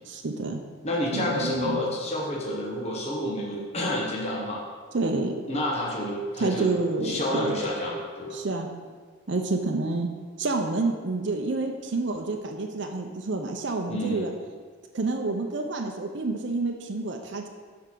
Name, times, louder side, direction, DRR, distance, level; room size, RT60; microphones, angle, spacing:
voice 1, 0.1-0.6 1.1-1.8 4.9-5.3 6.4-7.5 8.3-8.7 9.3-10.1 10.4-14.3 14.9-17.5, right 3 dB, 60° right, 3 dB, 0.6 m, -28 dB
voice 2, 0.8-4.6 5.1-6.7 7.0-8.4 13.9-14.3, left 1 dB, 30° left, -3 dB, 1.3 m, -29 dB
12.0 x 4.7 x 3.9 m, 1.5 s
head